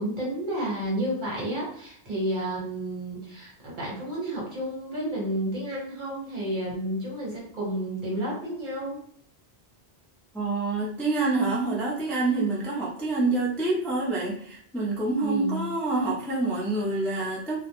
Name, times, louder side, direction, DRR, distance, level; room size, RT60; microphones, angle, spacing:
voice 1, 0.0-9.0 15.2-15.6, right 1 dB, 50° right, -4 dB, 1.1 m, -31 dB
voice 2, 10.3-17.7, right 3 dB, ahead, -6 dB, 0.3 m, -27 dB
2.2 x 2.1 x 2.9 m, 0.62 s
omnidirectional pair, 1.1 m